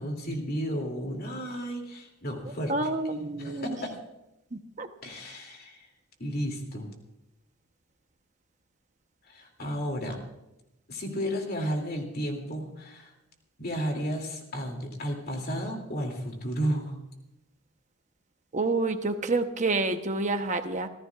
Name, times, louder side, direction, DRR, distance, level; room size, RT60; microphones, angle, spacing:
voice 1, 0.0-2.7 3.4-4.0 5.0-5.9 6.2-6.9 9.3-10.2 10.9-13.1 13.6-17.0, equal, 45° left, 2 dB, 2.8 m, -33 dB
voice 2, 2.7-3.8 4.5-4.9 18.5-20.9, right 3 dB, 35° right, 7 dB, 1.0 m, -28 dB
27.0 x 15.0 x 2.5 m, 0.91 s
head